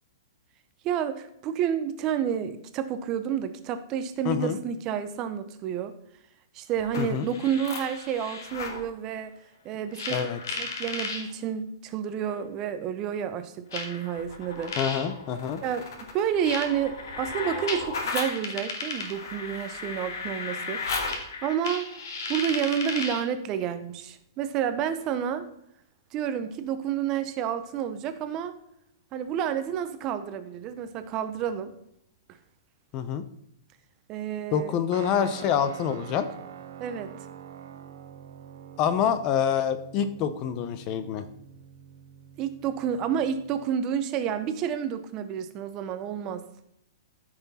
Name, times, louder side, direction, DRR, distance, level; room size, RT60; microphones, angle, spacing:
voice 1, 0.8-6.0 6.5-9.4 9.6-10.2 10.5-14.7 15.6-15.9 16.1-20.8 21.4-21.9 22.3-25.5 26.1-28.6 29.1-31.7 34.1-34.7 36.8-37.1 42.4-46.4, right 8 dB, 20° right, 10 dB, 0.6 m, -30 dB
voice 2, 4.2-4.6 7.0-7.3 10.1-10.4 14.8-15.6 32.9-33.2 34.5-36.3 38.8-41.2, left 8 dB, 20° left, 11 dB, 0.5 m, -26 dB
sound 1, 6.8-8.8 9.9-11.2 12.3-12.4 13.7-23.3, left 4 dB, 65° left, 2.3 m, -34 dB
Guitar, 34.9-43.7, right 9 dB, 45° right, 0.9 m, -46 dB
13.5 x 5.9 x 4.1 m, 0.77 s
hypercardioid pair, 175°, 2 cm